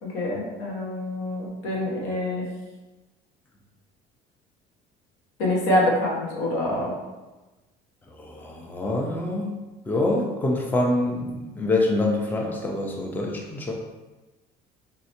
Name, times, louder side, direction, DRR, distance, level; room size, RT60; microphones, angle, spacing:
voice 1, 0.0-2.4 5.4-6.9, left 1 dB, 90° left, -3 dB, 1.0 m, -25 dB
voice 2, 8.1-9.6 9.9-13.7, left 2 dB, 10° left, 0 dB, 0.4 m, -26 dB
3.1 x 2.8 x 2.8 m, 1.1 s
cardioid pair, 140°, 18 cm